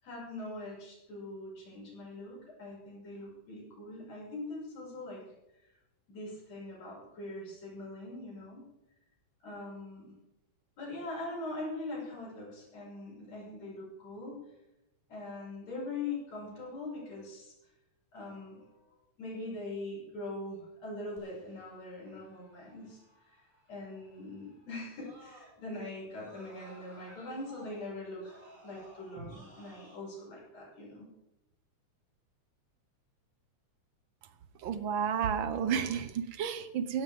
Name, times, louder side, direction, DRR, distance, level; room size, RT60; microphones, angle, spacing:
voice 1, 0.0-5.3 6.1-8.6 9.4-10.1 10.8-14.4 15.1-17.5 18.1-18.8 19.2-23.0 23.7-28.4 28.6-31.1, left 2 dB, 60° left, -4 dB, 7.9 m, -42 dB
Screaming, 21.2-25.8 26.1-30.0, right 1 dB, 15° right, 5.3 m, -58 dB
voice 2, 34.6-37.0, right 7 dB, 70° right, 11 dB, 1.2 m, -31 dB
16.5 x 16.0 x 3.7 m, 0.91 s
omnidirectional pair, 3.4 m